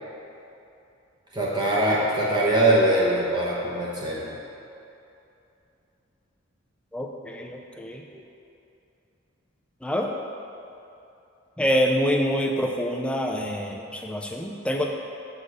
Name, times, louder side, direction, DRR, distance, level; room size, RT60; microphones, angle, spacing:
voice 1, 1.3-4.3, right 1 dB, 20° right, -6 dB, 1.0 m, -22 dB
voice 2, 6.9-8.0 9.8-10.1 11.6-14.9, equal, 5° left, 1 dB, 0.4 m, -26 dB
6.6 x 3.9 x 6.3 m, 2.8 s
head